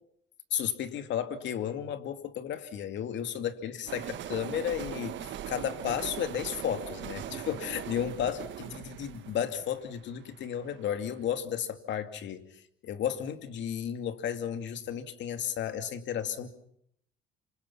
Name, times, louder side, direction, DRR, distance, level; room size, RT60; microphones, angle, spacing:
voice 1, 0.5-5.2 5.5-16.5, left 9 dB, 60° left, 8 dB, 2.5 m, -33 dB
sound 1, 3.9-10.9, right 11 dB, 65° right, 1.4 m, -40 dB
28.0 x 25.5 x 5.8 m, 0.71 s
cardioid pair, 115°, 21 cm